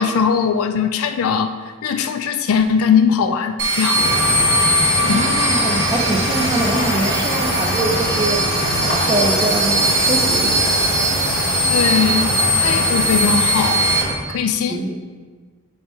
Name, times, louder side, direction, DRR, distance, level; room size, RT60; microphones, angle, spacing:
voice 1, 0.0-1.5 1.8-4.1 5.0-5.3 11.7-13.9 14.3-15.0, left 6 dB, 80° left, 7 dB, 0.3 m, -20 dB
sound 1, 3.6-14.0, right 1 dB, 55° right, 1.1 m, -20 dB
sound 2, 3.9-14.1, equal, 40° left, 1.2 m, -24 dB
voice 2, 5.0-8.4 8.8-10.6 14.7-15.0, right 2 dB, 20° right, 1 dB, 0.5 m, -23 dB
9.4 x 3.6 x 3.1 m, 1.4 s
head